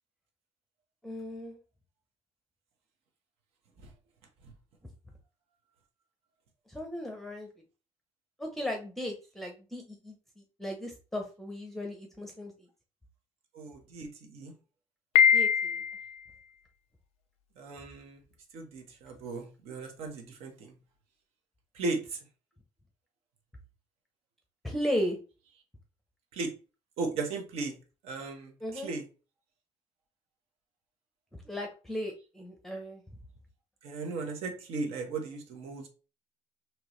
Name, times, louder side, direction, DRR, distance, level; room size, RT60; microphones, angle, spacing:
voice 1, 1.0-1.6 6.7-7.5 8.4-10.1 10.6-12.5 15.3-15.8 24.6-25.2 28.6-28.9 31.4-33.0, equal, ahead, 2 dB, 0.7 m, -36 dB
voice 2, 13.5-14.5 17.6-18.2 18.5-20.7 21.7-22.2 26.3-26.5 27.0-27.8 28.0-29.0 33.8-35.9, right 3 dB, 70° right, 3 dB, 1.2 m, -36 dB
Piano, 15.2-16.2, left 8 dB, 85° left, 0.4 m, -23 dB
4.5 x 3.0 x 3.1 m, 0.34 s
cardioid pair, 150°, 10 cm